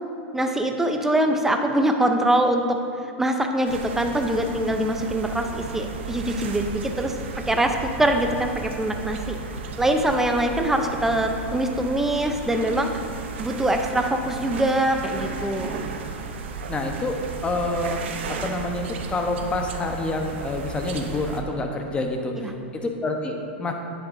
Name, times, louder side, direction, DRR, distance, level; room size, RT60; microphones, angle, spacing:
voice 1, 0.3-7.2 7.5-9.4 9.8-12.9 13.4-15.8 22.4-22.5, right 1 dB, 5° right, 4 dB, 0.7 m, -23 dB
sound 1, 3.7-21.4, right 4 dB, 75° right, 0.9 m, -34 dB
voice 2, 16.7-18.0 18.3-23.7, left 2 dB, 15° left, 3 dB, 1.0 m, -28 dB
10.0 x 9.3 x 2.7 m, 2.9 s
hypercardioid pair, 125°, 6 cm